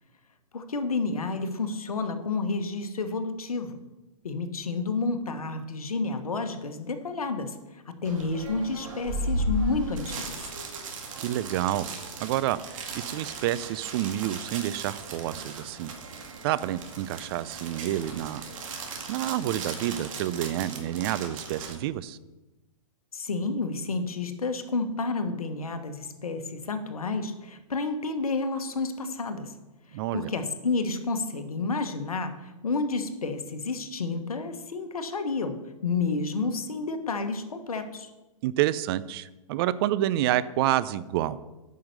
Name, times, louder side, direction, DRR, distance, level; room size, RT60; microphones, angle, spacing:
voice 1, 0.5-3.8 4.2-10.4 23.1-29.5 29.9-38.1, left 3 dB, 85° left, 9 dB, 1.2 m, -30 dB
sound 1, 8.0-21.7, right 2 dB, 65° right, 2.1 m, -36 dB
voice 2, 11.2-11.9 12.2-15.9 16.4-18.4 19.1-22.2 29.9-30.3 38.4-41.4, right 13 dB, 40° right, 16 dB, 0.5 m, -28 dB
8.9 x 5.7 x 6.5 m, 1.0 s
hypercardioid pair, 120°, 18 cm